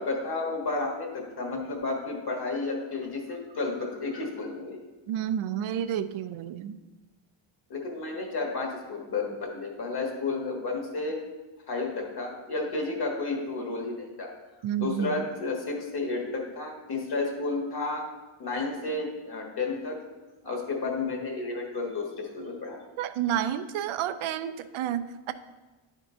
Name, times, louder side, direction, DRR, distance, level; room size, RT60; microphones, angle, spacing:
voice 1, 0.0-4.8 7.7-11.1 11.7-14.3 14.8-18.0 18.4-19.9 20.4-22.8, left 3 dB, 50° left, 1 dB, 1.6 m, -32 dB
voice 2, 5.1-6.8 14.6-15.2 23.0-25.3, right 10 dB, 85° right, 10 dB, 0.5 m, -30 dB
10.0 x 3.7 x 3.7 m, 1.2 s
wide cardioid pair, 135°, 48 cm